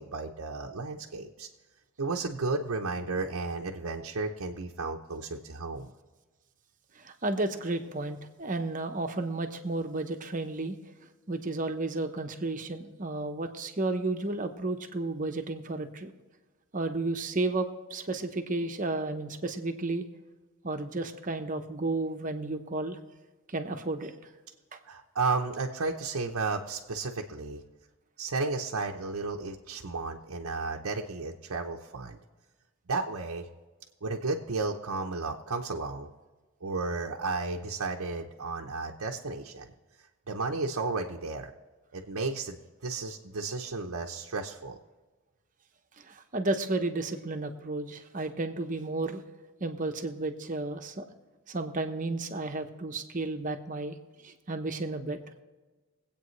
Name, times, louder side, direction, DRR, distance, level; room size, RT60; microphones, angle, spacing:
voice 1, 0.0-1.5 2.0-5.9 24.8-27.6 28.2-32.2 32.9-33.5 34.0-36.1 36.6-39.7 40.3-41.5 41.9-44.8, right 3 dB, 80° right, 1 dB, 0.8 m, -33 dB
voice 2, 6.9-10.7 11.3-16.1 16.7-20.0 20.6-23.0 23.5-24.1 24.7-24.8 46.0-49.2 49.6-51.0 51.5-54.0 54.2-55.2, right 2 dB, 35° right, 6 dB, 0.9 m, -32 dB
22.5 x 8.5 x 3.2 m, 1.3 s
head